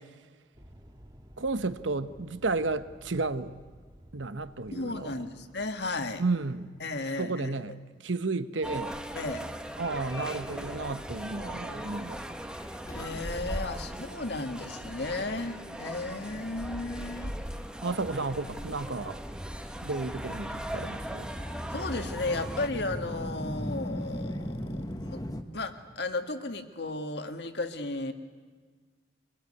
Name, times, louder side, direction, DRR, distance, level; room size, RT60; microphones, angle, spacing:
sound 1, 0.5-7.0, equal, 20° right, 1.8 m, -54 dB
voice 1, 1.4-3.5 4.1-5.2 6.2-6.7 7.2-9.0 9.8-12.2 17.8-19.2 19.8-21.3, right 3 dB, 90° right, 1.0 m, -32 dB
voice 2, 4.7-6.2 6.8-7.5 9.1-9.5 12.9-17.3 21.7-25.2 25.5-28.1, left 2 dB, 60° left, 1.7 m, -34 dB
sound 2, 8.6-22.7, equal, 5° right, 1.0 m, -39 dB
Subway metro underground, 9.8-25.4, equal, 20° left, 1.3 m, -41 dB
24.5 x 20.5 x 9.8 m
head